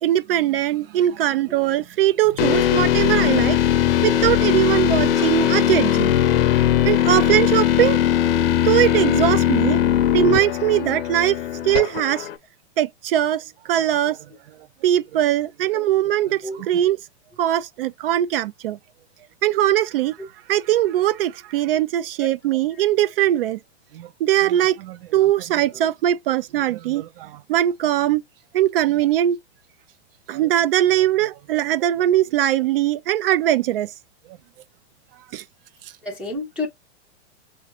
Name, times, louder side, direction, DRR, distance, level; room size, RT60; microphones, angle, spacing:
voice 1, 0.0-3.6 4.0-6.1 6.8-8.0 8.6-12.3 12.8-14.2 14.8-17.0 17.4-18.8 19.4-20.2 20.5-23.6 23.9-28.2 28.5-29.4 30.3-33.9 35.3-35.4, right 12 dB, 55° right, 0.5 m, -21 dB
sound 1, 2.4-12.3, left 10 dB, 55° left, 0.6 m, -19 dB
voice 2, 5.2-5.5 10.7-10.8 15.7-15.9 16.4-16.6 22.2-22.3 36.0-36.7, left 2 dB, 5° right, 0.6 m, -31 dB
4.9 x 2.9 x 2.9 m
supercardioid pair, 160°, 35 cm